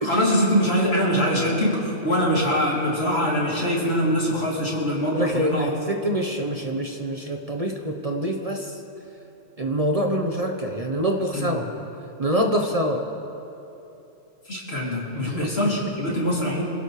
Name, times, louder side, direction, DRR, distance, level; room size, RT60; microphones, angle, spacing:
voice 1, 0.0-5.7 11.3-11.6 14.5-16.6, equal, 60° left, -5 dB, 3.5 m, -23 dB
voice 2, 5.1-8.8 9.6-11.6 12.2-13.1 15.2-15.7, equal, 35° right, 2 dB, 1.0 m, -25 dB
26.5 x 16.0 x 3.3 m, 3.0 s
omnidirectional pair, 1.2 m